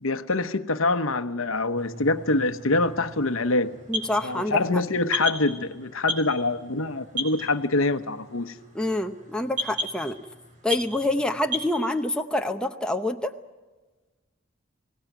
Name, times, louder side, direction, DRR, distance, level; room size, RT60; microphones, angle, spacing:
voice 1, 0.0-3.7 4.2-8.5, left 2 dB, 75° left, 1.0 m, -25 dB
sound 1, 1.8-11.7, equal, 35° right, 4.3 m, -36 dB
voice 2, 3.9-4.8 8.7-10.2 10.6-13.3, left 1 dB, 5° left, 0.8 m, -27 dB
23.5 x 18.0 x 9.3 m
head